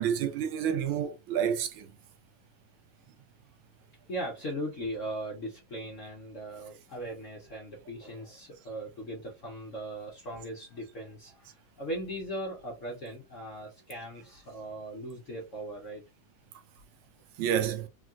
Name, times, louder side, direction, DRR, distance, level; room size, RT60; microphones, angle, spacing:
voice 1, 0.0-1.9 17.4-17.9, right 8 dB, 80° right, 1.4 m, -29 dB
voice 2, 4.1-16.0, right 1 dB, 55° left, 0.8 m, -39 dB
3.7 x 2.3 x 2.4 m
omnidirectional pair, 2.3 m